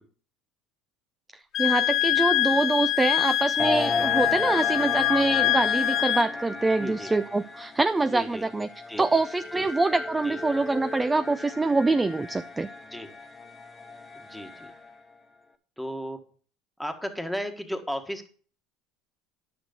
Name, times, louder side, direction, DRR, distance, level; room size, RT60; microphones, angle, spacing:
voice 1, 1.3-8.7 9.0-12.7, right 3 dB, 15° right, 12 dB, 0.4 m, -25 dB
Wind instrument woodwind instrument, 1.5-6.3, left 14 dB, 50° left, 0.5 m, -24 dB
sound 1, 3.6-15.0, left 3 dB, 20° left, 1.0 m, -35 dB
voice 2, 6.7-7.1 8.1-8.4 8.9-9.2 9.5-9.7 10.2-10.4 12.8-13.1 14.1-14.7 15.8-16.2 16.8-18.3, equal, ahead, 5 dB, 1.5 m, -35 dB
10.5 x 6.3 x 5.2 m, 0.43 s
supercardioid pair, 105°, 0 cm